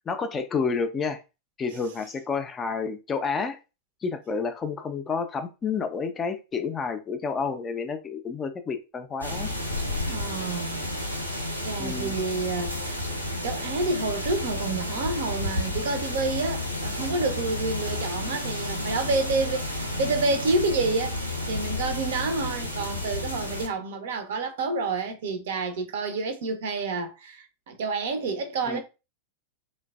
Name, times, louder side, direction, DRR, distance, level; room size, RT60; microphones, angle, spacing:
voice 1, 0.1-1.2 1.6-3.6 4.0-9.5 11.8-12.1 28.7-28.8, left 5 dB, 20° left, 0.4 m, -30 dB
sound 1, 9.2-23.7, left 1 dB, 90° left, 0.5 m, -31 dB
voice 2, 10.1-10.8 11.3-13.0 13.3-21.2 21.5-28.8, right 3 dB, 55° right, 0.5 m, -29 dB
3.1 x 2.2 x 2.3 m
figure-of-eight pair, 90°, 0 cm